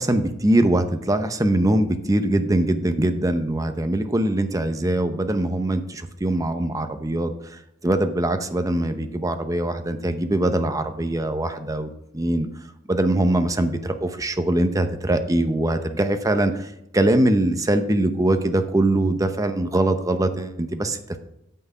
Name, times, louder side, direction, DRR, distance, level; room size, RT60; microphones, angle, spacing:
voice 1, 0.0-12.5 12.9-21.2, right 1 dB, 15° right, 8 dB, 0.7 m, -22 dB
9.3 x 6.0 x 5.5 m, 0.83 s
head